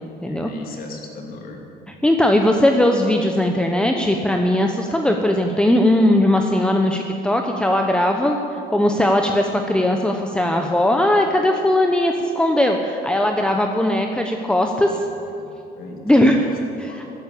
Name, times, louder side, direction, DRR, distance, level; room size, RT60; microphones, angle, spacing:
voice 1, 0.3-1.6 14.8-14.9 15.4-15.5 15.8-16.4 16.9-17.1, left 3 dB, 60° left, 1 dB, 2.9 m, -37 dB
voice 2, 1.9-15.0 16.0-17.1, left 1 dB, 5° left, 3 dB, 0.9 m, -19 dB
14.0 x 9.7 x 8.7 m, 2.8 s
cardioid pair, 110°, 17 cm